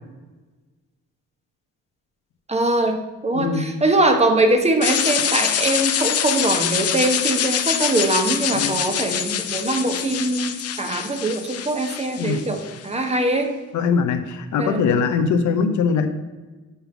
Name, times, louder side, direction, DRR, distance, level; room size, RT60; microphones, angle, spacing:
voice 1, 2.5-13.5 14.6-14.9, right 2 dB, 20° right, 4 dB, 1.1 m, -22 dB
sound 1, 4.8-12.8, left 9 dB, 55° left, 0.7 m, -25 dB
voice 2, 13.7-16.1, left 5 dB, 75° left, 8 dB, 0.8 m, -21 dB
5.6 x 5.5 x 5.9 m, 1.2 s
cardioid pair, 90°, 30 cm